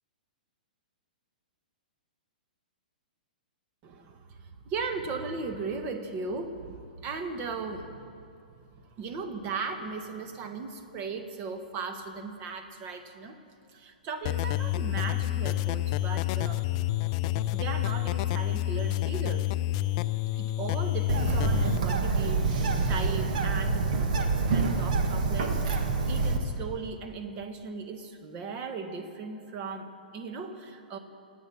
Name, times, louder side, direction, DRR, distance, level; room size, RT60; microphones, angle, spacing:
voice 1, 3.8-8.1 8.7-13.4 13.7-16.6 17.5-19.5 20.3-31.0, right 4 dB, 35° right, 7 dB, 1.7 m, -37 dB
sound 1, 14.2-21.8, left 16 dB, 40° left, 0.5 m, -29 dB
Bird, 21.1-26.4, right 4 dB, 60° right, 1.7 m, -26 dB
25.0 x 9.0 x 5.7 m, 2.5 s
hypercardioid pair, 115°, 5 cm